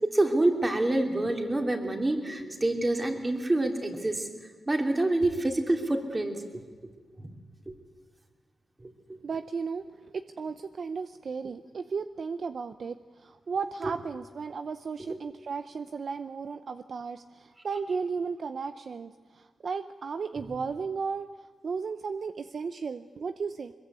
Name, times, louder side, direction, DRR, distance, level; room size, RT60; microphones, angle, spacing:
voice 1, 0.0-4.3 4.7-6.4 7.7-7.8 9.1-9.2 13.8-13.9 15.0-15.2 20.3-20.4, right 2 dB, 25° right, 3 dB, 3.3 m, -27 dB
voice 2, 9.2-21.3 21.6-23.7, right 5 dB, 60° right, 10 dB, 0.7 m, -35 dB
22.0 x 22.0 x 8.3 m, 1.5 s
cardioid pair, 75°, 0 cm